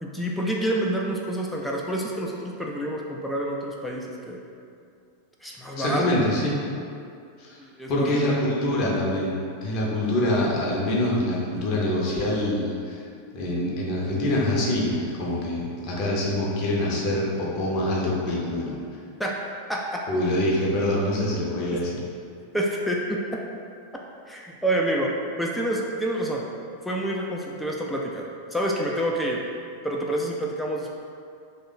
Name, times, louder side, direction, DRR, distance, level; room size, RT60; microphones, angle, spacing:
voice 1, 0.0-4.4 5.4-6.0 7.6-8.4 19.2-19.3 19.7-20.0 22.5-23.4 24.3-25.1 25.4-26.5 26.8-28.3 28.5-29.4 29.8-30.9, right 1 dB, 5° left, -2 dB, 0.3 m, -28 dB
voice 2, 5.7-6.6 7.4-7.6 7.9-13.0 13.3-18.7 20.1-22.0, left 1 dB, 40° left, -4 dB, 0.7 m, -25 dB
3.0 x 2.1 x 3.9 m, 2.4 s
figure-of-eight pair, 90°, 0 cm